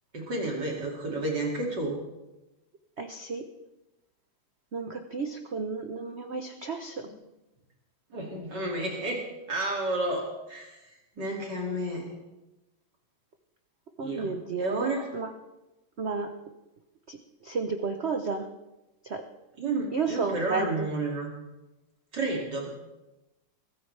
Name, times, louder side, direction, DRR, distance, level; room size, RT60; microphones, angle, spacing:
voice 1, 0.1-2.0 7.0-7.1 8.1-9.2 9.5-12.1 14.0-15.0 19.6-21.3 22.1-22.7, right 2 dB, 50° right, -1 dB, 3.1 m, -31 dB
voice 2, 3.0-3.5 4.7-7.1 14.0-15.3 16.0-16.3 17.1-17.2 17.4-18.5 19.0-19.2 19.9-20.9, right 4 dB, 75° right, 6 dB, 0.6 m, -32 dB
23.0 x 15.0 x 3.3 m, 1.0 s
omnidirectional pair, 2.4 m